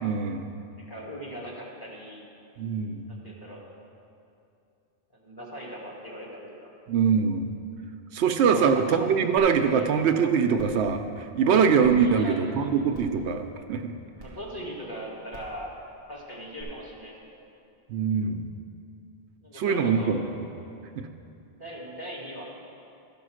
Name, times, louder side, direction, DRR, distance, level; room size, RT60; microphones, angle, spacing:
voice 1, 0.0-0.5 2.6-3.0 6.9-7.5 8.1-11.0 11.3-13.9 17.9-18.5 19.5-20.0 21.0-21.1, right 6 dB, 75° right, 6 dB, 0.8 m, -23 dB
voice 2, 0.8-2.2 3.1-3.7 5.2-6.7 8.5-9.2 9.7-9.9 11.9-12.8 14.2-15.7 16.1-17.4 19.4-20.2 21.6-22.5, equal, 20° left, -4 dB, 1.7 m, -39 dB
sound 1, 9.4-9.5 9.9-10.0 10.5-10.8 11.8-11.9 12.9-13.2 14.2-14.3 15.3-15.5 16.6-16.7, right 2 dB, 80° left, 2.0 m, -46 dB
12.5 x 5.3 x 6.3 m, 2.6 s
omnidirectional pair, 1.1 m